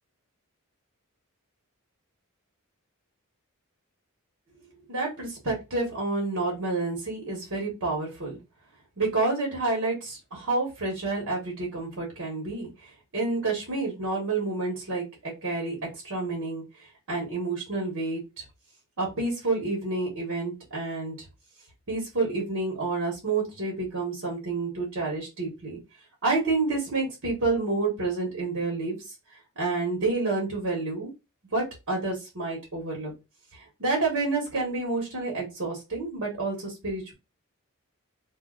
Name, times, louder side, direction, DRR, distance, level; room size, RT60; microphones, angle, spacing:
voice 1, 4.9-8.4 9.0-12.7 13.1-15.8 16.0-16.6 17.1-18.2 19.0-21.1 21.9-25.8 26.2-29.0 29.6-31.1 31.5-33.1 33.8-37.1, right 3 dB, 60° right, -1 dB, 1.3 m, -29 dB
2.7 x 2.4 x 3.7 m, 0.25 s
head